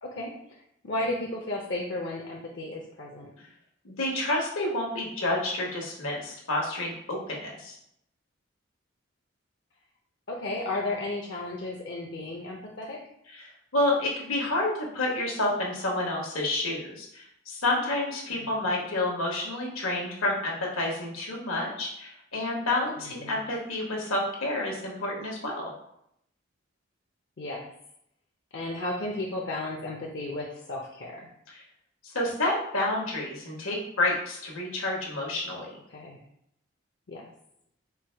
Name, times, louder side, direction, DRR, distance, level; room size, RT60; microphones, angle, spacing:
voice 1, 0.0-3.3 10.3-13.0 18.4-18.6 23.0-23.4 27.4-27.7 28.5-31.3 35.9-36.2 37.1-37.3, left 2 dB, 55° left, -1 dB, 0.6 m, -34 dB
voice 2, 3.8-7.8 13.3-25.7 31.5-31.6 32.0-35.7, left 2 dB, 85° left, -1 dB, 1.3 m, -29 dB
4.6 x 2.2 x 4.4 m, 0.74 s
head